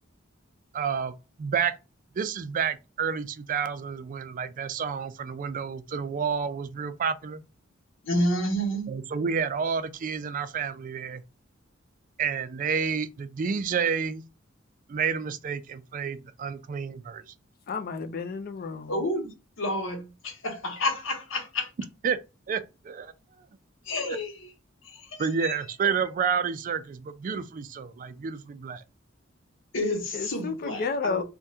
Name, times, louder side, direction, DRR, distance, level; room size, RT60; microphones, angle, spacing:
voice 1, 0.7-1.7 2.2-7.4 8.9-11.2 12.2-14.2 14.9-17.3 22.0-22.2 22.5-23.1 24.1-24.2 25.2-28.8, right 6 dB, 45° right, 0.3 m, -30 dB
voice 2, 8.0-9.0 18.9-19.3 19.6-21.7 23.9-24.5 24.8-25.6 29.7-31.2, left 1 dB, 80° left, 0.9 m, -30 dB
voice 3, 17.7-19.0 30.1-31.2, left 5 dB, 50° left, 0.4 m, -32 dB
3.4 x 2.2 x 2.6 m
head